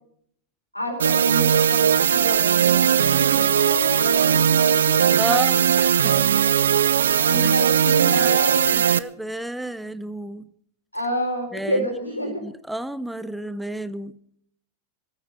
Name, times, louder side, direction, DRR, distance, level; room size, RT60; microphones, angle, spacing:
voice 1, 0.7-5.7 7.2-8.9 10.9-12.4, equal, 85° left, 3 dB, 4.4 m, -29 dB
sound 1, 1.0-9.0, right 8 dB, 65° right, 0.7 m, -19 dB
voice 2, 5.2-6.2 7.4-7.5 7.8-8.4 8.7-10.5 11.5-11.9 12.2-14.1, right 1 dB, 5° right, 15 dB, 0.7 m, -31 dB
21.0 x 14.0 x 4.3 m, 0.63 s
figure-of-eight pair, 90°, 0 cm